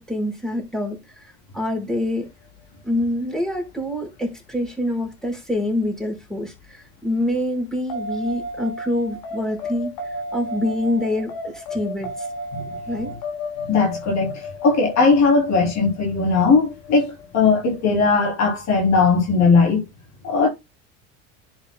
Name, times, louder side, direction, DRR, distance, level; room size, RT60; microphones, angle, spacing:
voice 1, 0.0-2.3 2.8-12.3 12.9-13.1, left 1 dB, ahead, 4.9 m, -26 dB
sound 1, 7.9-18.1, left 1 dB, 65° left, 4.4 m, -33 dB
voice 2, 13.7-19.8 20.2-20.5, left 4 dB, 45° left, 3.3 m, -18 dB
10.5 x 6.3 x 2.2 m
hypercardioid pair, 85°, 37 cm